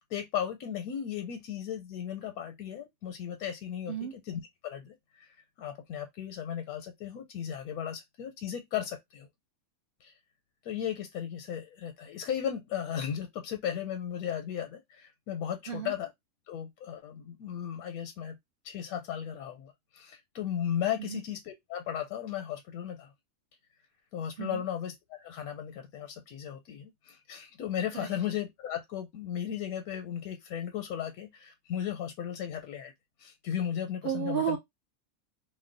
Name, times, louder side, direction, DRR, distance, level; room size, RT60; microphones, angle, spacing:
voice 1, 0.1-5.3 5.6-9.3 10.0-10.1 10.6-16.1 16.5-18.4 18.6-23.1 24.1-32.9 33.2-34.6, left 9 dB, 85° left, 1.0 m, -36 dB
voice 2, 34.0-34.6, right 9 dB, 75° right, 0.5 m, -33 dB
2.6 x 2.1 x 3.7 m
omnidirectional pair, 1.5 m